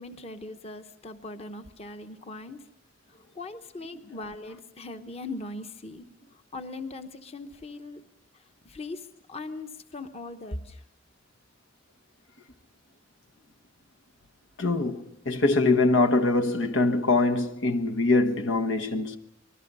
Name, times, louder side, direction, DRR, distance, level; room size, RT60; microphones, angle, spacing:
voice 1, 0.0-2.6 3.3-6.1 6.5-8.0 8.6-10.8, left 2 dB, 30° left, 1.0 m, -39 dB
voice 2, 14.6-19.2, left 2 dB, 90° left, 1.3 m, -23 dB
26.0 x 20.5 x 5.5 m
head